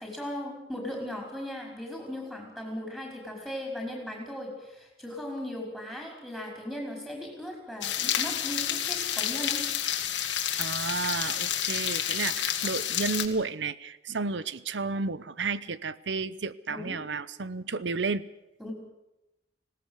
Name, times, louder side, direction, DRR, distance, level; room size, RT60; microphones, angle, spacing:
voice 1, 0.0-9.6 16.7-17.0 18.6-18.7, left 1 dB, 5° right, 0 dB, 5.5 m, -37 dB
sound 1, 7.8-13.3, left 10 dB, 85° left, 2.1 m, -29 dB
voice 2, 10.6-18.3, right 4 dB, 80° right, 17 dB, 0.8 m, -32 dB
19.5 x 17.5 x 8.2 m, 0.92 s
head